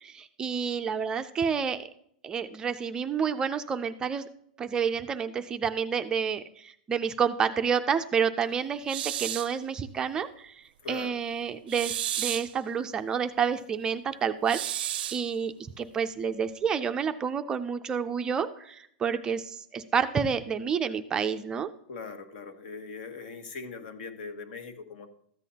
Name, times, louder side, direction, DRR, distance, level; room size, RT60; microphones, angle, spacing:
voice 1, 0.0-1.9 2.2-4.3 4.6-21.7, right 6 dB, 15° right, 8 dB, 0.3 m, -29 dB
sound 1, 8.9-9.6 11.7-12.5 14.5-15.3, right 12 dB, 80° right, 0.4 m, -32 dB
voice 2, 10.8-11.1 21.9-25.1, left 4 dB, 70° left, 7 dB, 1.4 m, -41 dB
13.5 x 8.2 x 2.8 m, 0.66 s
supercardioid pair, 165°, 5 cm